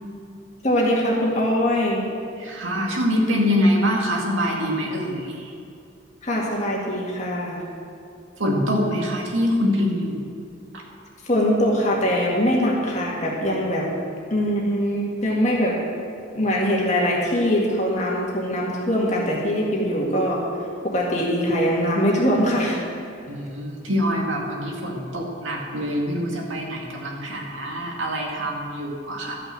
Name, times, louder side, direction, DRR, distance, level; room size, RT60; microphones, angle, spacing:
voice 1, 0.6-2.1 6.2-7.6 11.2-13.9 14.3-15.8 16.3-20.4 20.8-22.8, equal, 35° left, -3 dB, 2.0 m, -22 dB
voice 2, 2.4-5.5 8.4-10.2 23.3-29.4, equal, 85° right, -1 dB, 2.2 m, -24 dB
13.0 x 6.0 x 7.6 m, 2.6 s
head